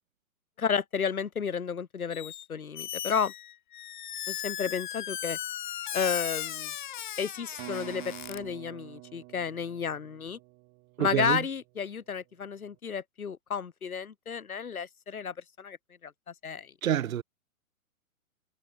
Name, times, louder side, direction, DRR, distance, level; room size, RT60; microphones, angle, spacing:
voice 1, 0.6-3.3 4.3-5.4 5.9-6.7 7.2-10.4 11.0-15.8 16.0-16.7, left 6 dB, 75° left, 1.8 m, -32 dB
Squeak, 2.1-2.5 2.7-8.4, left 12 dB, 35° left, 0.5 m, -37 dB
sound 1, 7.6-11.4, right 30 dB, 30° right, 3.2 m, -46 dB
voice 2, 11.0-11.4 16.8-17.2, right 10 dB, 70° right, 0.7 m, -27 dB
figure-of-eight pair, 120°, 43 cm